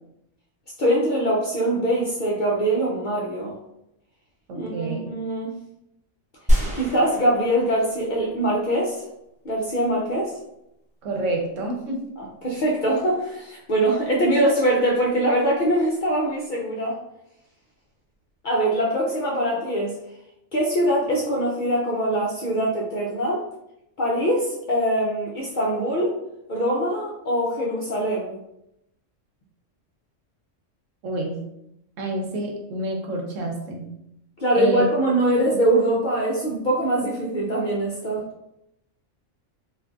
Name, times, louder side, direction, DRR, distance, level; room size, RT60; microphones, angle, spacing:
voice 1, 0.8-3.6 4.5-5.5 6.7-9.0 9.4-10.3 12.2-17.0 18.4-20.0 20.5-23.4 24.0-26.2 26.5-28.3 34.4-38.2, right 1 dB, 55° left, -3 dB, 0.5 m, -23 dB
voice 2, 4.5-5.1 11.0-12.1 31.0-31.4 32.0-33.9 34.5-34.9, right 2 dB, 80° right, 1 dB, 1.1 m, -28 dB
sound 1, 6.5-8.4 8.7-8.8, equal, 10° right, 0.4 m, -25 dB
3.7 x 2.5 x 2.3 m, 0.82 s
omnidirectional pair, 1.3 m